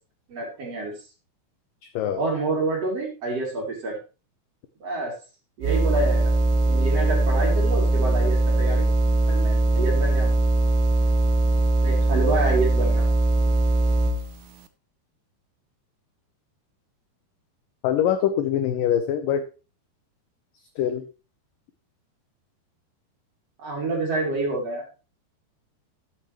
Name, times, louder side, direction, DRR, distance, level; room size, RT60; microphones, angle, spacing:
voice 1, 0.3-0.9 2.2-4.0 4.8-5.1 5.6-6.3 6.6-8.9 9.3-10.4 11.8-13.0 23.6-24.8, right 3 dB, 40° right, -1 dB, 3.9 m, -28 dB
sound 1, 5.6-14.3, right 2 dB, 80° right, 2.9 m, -21 dB
voice 2, 17.8-19.4 20.8-21.1, left 9 dB, 80° left, 9 dB, 2.0 m, -23 dB
13.5 x 8.6 x 3.1 m, 0.32 s
omnidirectional pair, 4.8 m